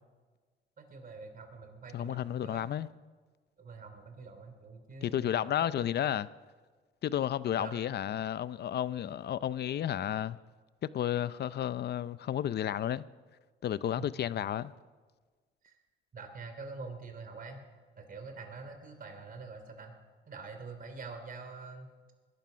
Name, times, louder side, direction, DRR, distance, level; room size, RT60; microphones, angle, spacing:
voice 1, 0.8-2.7 3.6-5.8 7.6-7.9 14.0-14.1 15.6-15.8 16.1-17.6 17.9-20.0 20.3-21.9, right 4 dB, 45° right, 3.2 m, -45 dB
voice 2, 1.9-2.9 5.0-6.3 7.0-10.4 10.9-13.0 13.6-14.7, left 10 dB, 55° left, 0.6 m, -32 dB
21.0 x 12.0 x 5.2 m
cardioid pair, 90°, 20 cm